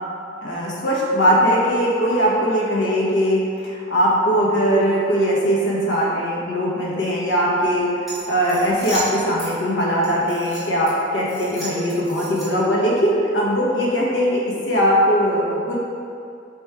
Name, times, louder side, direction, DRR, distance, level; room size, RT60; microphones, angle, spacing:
voice 1, 0.4-15.8, equal, 75° left, -4 dB, 0.9 m, -20 dB
sound 1, 8.0-9.5 10.0-10.9 11.3-12.7, right 1 dB, ahead, 1.4 m, -34 dB
3.4 x 3.1 x 4.4 m, 2.5 s
head